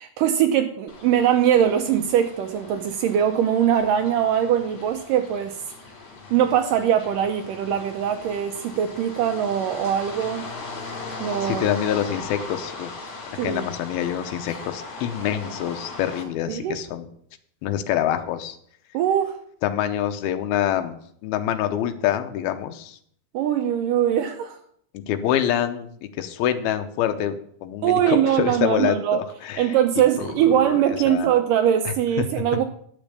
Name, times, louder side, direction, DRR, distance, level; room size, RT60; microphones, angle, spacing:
voice 1, 0.0-5.6 6.3-10.5 11.2-11.6 13.4-13.6 16.5-16.8 18.9-19.4 23.3-24.6 27.8-29.2 29.6-32.6, right 10 dB, 75° right, 2.1 m, -21 dB
sound 1, 0.9-16.2, left 4 dB, 55° left, 3.6 m, -38 dB
voice 2, 11.4-12.9 13.4-17.1 17.6-18.6 19.6-23.0 24.9-29.8 30.2-30.3 30.6-30.8 31.1-31.3 31.9-32.3, left 10 dB, 85° left, 2.7 m, -26 dB
10.5 x 6.8 x 6.7 m
omnidirectional pair, 4.4 m